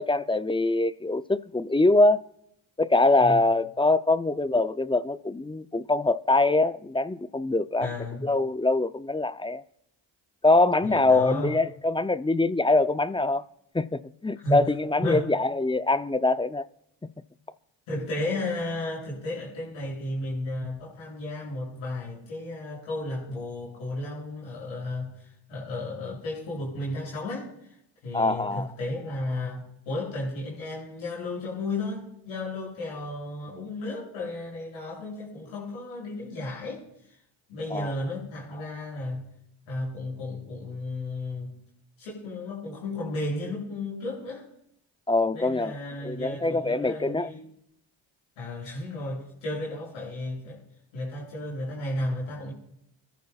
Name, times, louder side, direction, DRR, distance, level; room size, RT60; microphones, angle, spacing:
voice 1, 0.0-2.2 2.8-7.9 8.2-9.6 10.4-13.4 13.7-16.7 28.1-28.7 37.7-37.9 45.1-45.7 46.0-47.3, left 2 dB, 10° left, 0.6 m, -23 dB
voice 2, 3.2-3.5 7.8-8.3 10.8-11.6 14.4-14.7 15.0-15.2 17.9-27.7 28.0-36.8 37.5-39.3 39.7-41.5 42.0-44.4 45.3-47.4 48.4-50.6 50.9-52.5, left 2 dB, 85° left, 7.5 m, -33 dB
25.5 x 14.0 x 2.4 m
supercardioid pair, 45°, 47 cm